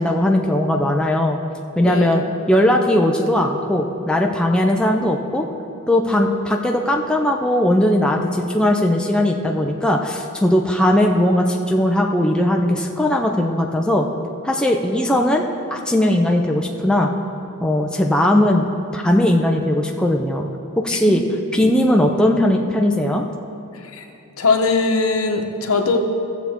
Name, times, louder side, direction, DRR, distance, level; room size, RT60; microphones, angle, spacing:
voice 1, 0.0-1.4 1.8-2.2 2.5-5.5 5.9-14.1 14.4-15.4 15.7-17.1 17.6-20.5 20.8-21.2 21.5-23.3, left 1 dB, 5° left, 1 dB, 0.5 m, -18 dB
voice 2, 1.8-2.2 21.1-21.2 23.8-24.1 24.4-26.0, left 4 dB, 70° left, 3 dB, 0.9 m, -20 dB
15.5 x 7.2 x 3.6 m, 2.8 s
head